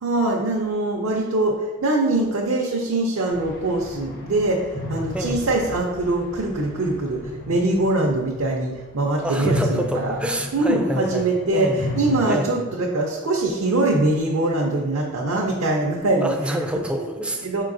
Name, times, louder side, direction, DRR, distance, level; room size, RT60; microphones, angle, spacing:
voice 1, 0.0-10.2 10.5-16.6 16.9-17.1 17.4-17.6, right 2 dB, 75° right, -1 dB, 0.5 m, -23 dB
sound 1, 3.3-8.9 9.3-12.2, left 1 dB, 45° left, 0.8 m, -33 dB
voice 2, 9.2-11.9 12.2-12.5 16.2-17.5, equal, 5° right, 3 dB, 0.3 m, -27 dB
4.7 x 3.7 x 2.5 m, 1.2 s
head